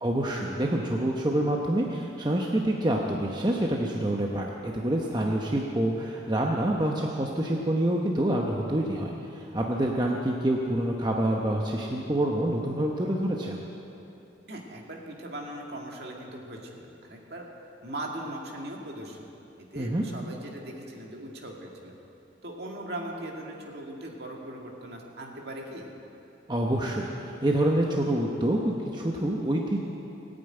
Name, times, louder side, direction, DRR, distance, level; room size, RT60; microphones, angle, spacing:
voice 1, 0.0-13.6 19.8-20.0 26.5-27.1 27.4-29.8, right 1 dB, 20° right, -1 dB, 0.9 m, -27 dB
voice 2, 14.5-17.4 17.8-19.3 19.7-21.9 22.4-25.9, right 1 dB, 55° right, 0 dB, 2.2 m, -39 dB
17.5 x 8.9 x 8.9 m, 2.9 s
head